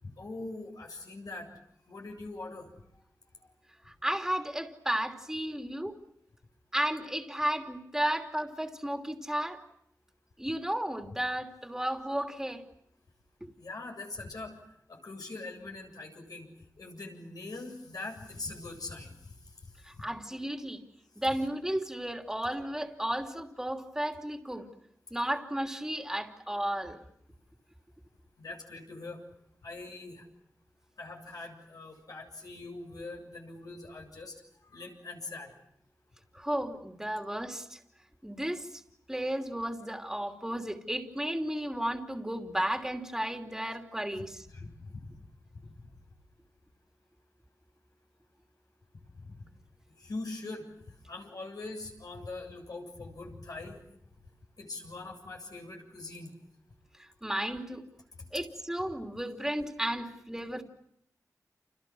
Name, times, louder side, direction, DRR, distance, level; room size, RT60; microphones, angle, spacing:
voice 1, 0.0-1.5 1.9-2.7 13.6-14.5 14.9-16.5 16.8-19.4 28.4-29.2 29.6-30.2 31.0-34.4 34.7-35.5 44.5-45.1 49.2-49.4 50.0-50.7 51.1-53.8 54.6-56.3, left 2 dB, 75° left, 2 dB, 7.6 m, -42 dB
voice 2, 3.8-6.0 6.7-9.6 10.4-12.6 13.4-13.5 19.8-20.8 21.2-24.6 25.1-27.0 36.3-37.8 38.2-38.8 39.1-44.4 57.0-57.8 58.3-60.6, right 1 dB, 10° right, 3 dB, 3.0 m, -33 dB
30.0 x 29.0 x 6.2 m, 0.71 s
wide cardioid pair, 80°, 6 cm